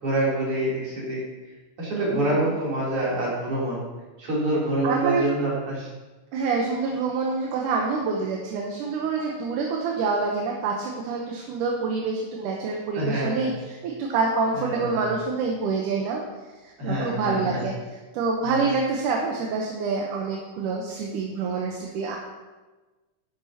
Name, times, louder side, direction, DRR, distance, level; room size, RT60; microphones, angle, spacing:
voice 1, 0.0-1.2 1.8-3.8 4.2-5.9 12.9-13.6 14.6-15.1 16.8-17.6 18.5-18.6, right 1 dB, 45° right, -7 dB, 4.1 m, -26 dB
voice 2, 2.1-2.5 4.8-5.3 6.3-16.2 16.8-17.7 18.1-22.2, right 4 dB, 75° right, 0 dB, 2.4 m, -26 dB
10.5 x 10.5 x 2.9 m, 1.2 s
omnidirectional pair, 3.8 m